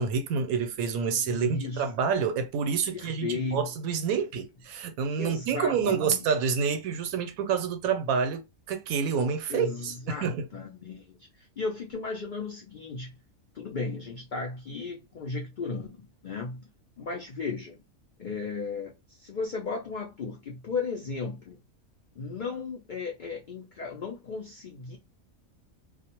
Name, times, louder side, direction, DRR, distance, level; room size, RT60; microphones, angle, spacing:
voice 1, 0.0-10.4, right 6 dB, 90° right, 1.0 m, -28 dB
voice 2, 1.1-1.9 2.9-3.6 5.2-6.3 9.5-13.1 13.5-16.6 17.0-17.8 18.2-21.6 22.1-25.0, left 4 dB, 85° left, 0.4 m, -35 dB
2.3 x 2.1 x 2.8 m
omnidirectional pair, 1.4 m